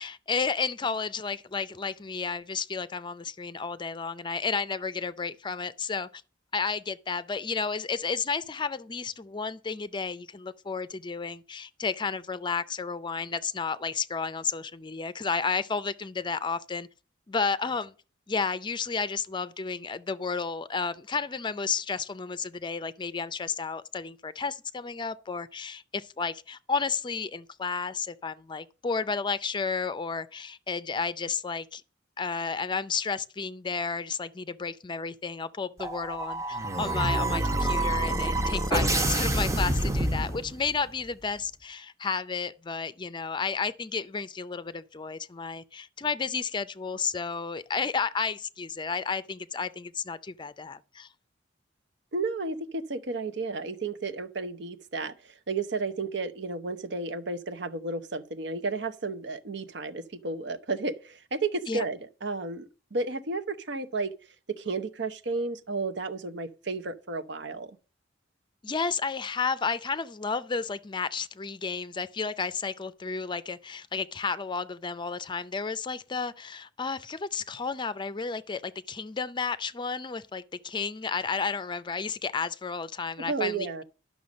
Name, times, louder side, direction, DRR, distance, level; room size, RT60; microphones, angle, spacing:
voice 1, 0.0-6.1 6.5-16.9 17.3-17.9 18.3-31.8 32.2-51.1 61.7-61.8 68.6-83.8, left 5 dB, 25° left, 0.5 m, -32 dB
sound 1, 35.8-40.8, right 1 dB, 15° right, 0.8 m, -27 dB
voice 2, 52.1-64.1 64.5-67.8 83.3-83.8, right 3 dB, 70° right, 0.9 m, -32 dB
11.5 x 6.2 x 5.2 m
head